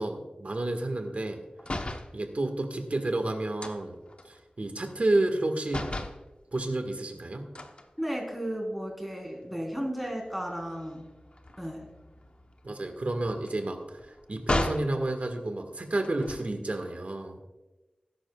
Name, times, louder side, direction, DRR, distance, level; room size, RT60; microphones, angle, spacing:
voice 1, 0.0-1.4 2.1-4.0 4.2-5.9 6.5-7.5 12.6-17.4, right 2 dB, 60° right, 5 dB, 1.7 m, -30 dB
sound 1, 1.6-2.1 3.6-5.4 5.7-6.2 7.5-8.6 9.1-9.3 9.6-14.9 16.0-16.7, left 2 dB, 45° left, 1.0 m, -37 dB
voice 2, 8.0-11.1 11.6-11.8, equal, ahead, 0 dB, 3.8 m, -34 dB
19.0 x 10.5 x 2.4 m, 1.1 s
wide cardioid pair, 65°, 3 cm